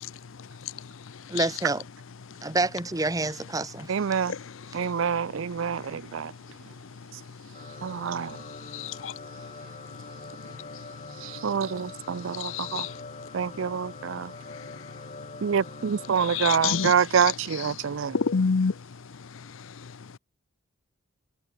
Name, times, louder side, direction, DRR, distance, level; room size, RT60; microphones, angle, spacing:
voice 1, 1.3-1.8 2.4-3.9, right 2 dB, 15° right, 0.8 m, -27 dB
voice 2, 3.9-4.3 4.7-6.3 7.8-8.4 11.2-12.9 13.3-14.3 15.4-18.2, right 7 dB, 65° right, 0.4 m, -26 dB
sound 1, 7.5-16.9, left 3 dB, 30° left, 5.5 m, -44 dB
voice 3, 8.7-9.1 12.4-12.9 16.3-16.9 18.1-18.7, left 5 dB, 65° left, 0.6 m, -26 dB
head